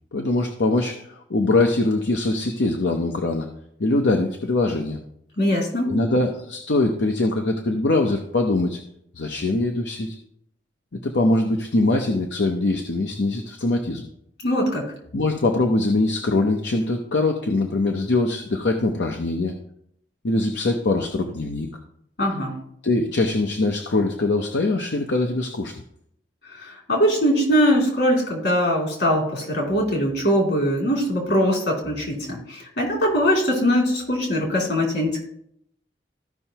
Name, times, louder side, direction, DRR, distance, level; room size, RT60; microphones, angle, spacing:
voice 1, 0.1-3.5 3.8-5.0 5.9-8.8 9.2-10.1 11.0-14.1 15.1-19.5 20.2-21.7 22.8-25.7, left 2 dB, 90° left, 3 dB, 0.8 m, -22 dB
voice 2, 5.4-5.9 14.4-14.8 22.2-22.6 26.5-35.3, equal, 70° left, -1 dB, 2.9 m, -21 dB
14.5 x 5.5 x 2.9 m, 0.72 s
head